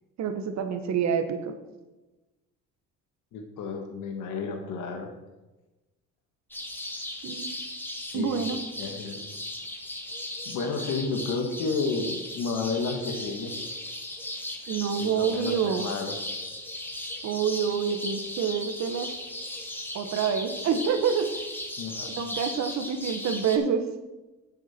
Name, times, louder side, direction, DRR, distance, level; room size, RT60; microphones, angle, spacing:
voice 1, 0.2-1.5 7.2-7.5 8.1-8.6 14.7-15.9 17.2-19.1 19.9-21.3 22.2-23.8, right 7 dB, 60° right, 8 dB, 1.2 m, -27 dB
voice 2, 3.3-5.1 8.1-8.5 8.8-9.2 10.4-13.5 15.0-16.2 21.8-22.1, left 4 dB, 75° left, 3 dB, 1.5 m, -31 dB
sound 1, 6.5-23.6, left 1 dB, 5° left, 1.5 m, -37 dB
9.1 x 8.0 x 4.3 m, 1.1 s
cardioid pair, 90°, 31 cm